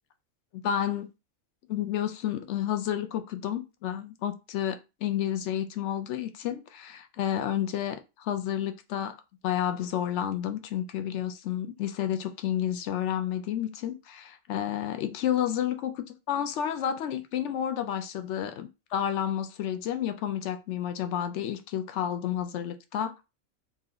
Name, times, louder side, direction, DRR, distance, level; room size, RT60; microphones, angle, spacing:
voice 1, 0.5-1.1 1.7-9.2 9.4-23.1, left 10 dB, 65° left, 0.8 m, -30 dB
3.1 x 2.8 x 3.8 m
omnidirectional pair, 1.4 m